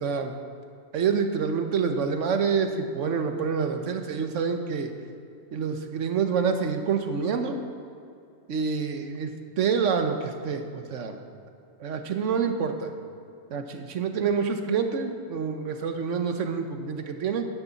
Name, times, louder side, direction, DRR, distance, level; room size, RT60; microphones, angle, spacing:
voice 1, 0.0-0.3 0.9-4.9 5.5-7.6 8.5-9.3 9.6-11.2 11.8-12.9 13.5-17.5, right 6 dB, 80° right, 6 dB, 1.3 m, -27 dB
10.5 x 6.8 x 7.0 m, 2.5 s
omnidirectional pair, 1.2 m